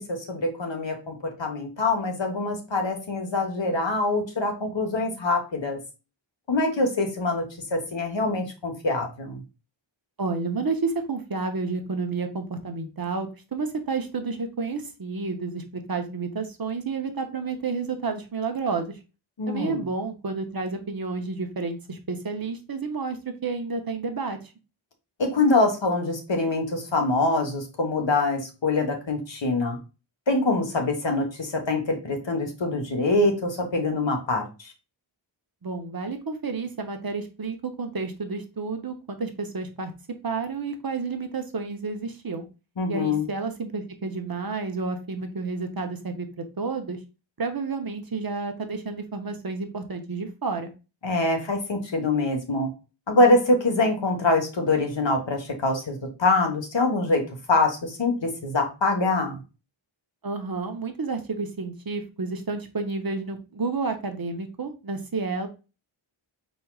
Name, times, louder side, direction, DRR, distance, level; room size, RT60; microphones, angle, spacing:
voice 1, 0.1-5.8 6.5-7.4 7.7-9.4 19.4-19.9 25.2-29.8 30.3-34.4 42.8-43.3 51.0-52.7 53.1-57.2 57.5-59.4, left 2 dB, 65° left, 3 dB, 1.3 m, -24 dB
voice 2, 10.2-18.9 19.5-24.4 35.6-39.9 40.2-42.4 42.9-47.0 47.4-50.7 60.2-65.5, right 4 dB, 45° right, 6 dB, 0.9 m, -30 dB
4.6 x 4.1 x 2.3 m, 0.30 s
wide cardioid pair, 60°, 48 cm